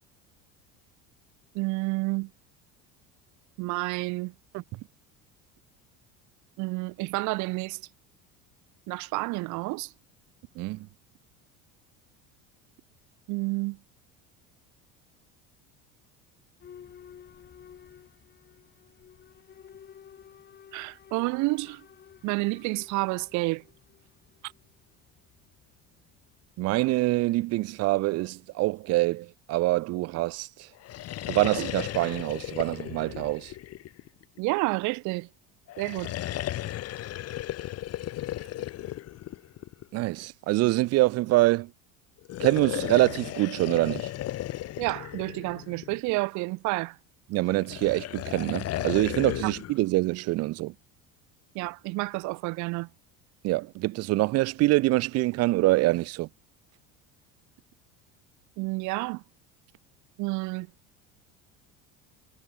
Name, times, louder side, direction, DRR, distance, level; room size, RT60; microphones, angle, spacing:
voice 1, 1.5-2.3 3.6-4.3 6.6-7.8 8.9-9.9 13.3-13.8 20.7-21.8 22.2-23.6 34.4-35.3 35.8-36.1 44.8-47.0 49.4-49.5 51.5-52.9 58.6-59.2 60.2-60.7, right 24 dB, 65° right, 1.3 m, -29 dB
voice 2, 10.6-10.9 26.6-30.7 31.3-33.5 39.9-41.7 42.4-44.1 47.3-50.7 53.4-56.3, right 19 dB, 50° right, 0.7 m, -25 dB
Boat Water vehicle / Alarm, 16.6-27.3, left 8 dB, 35° left, 4.7 m, -53 dB
sound 1, 30.8-34.4 35.7-40.0 42.2-46.2 47.5-49.8, left 14 dB, 50° left, 4.1 m, -35 dB
cardioid pair, 130°, 31 cm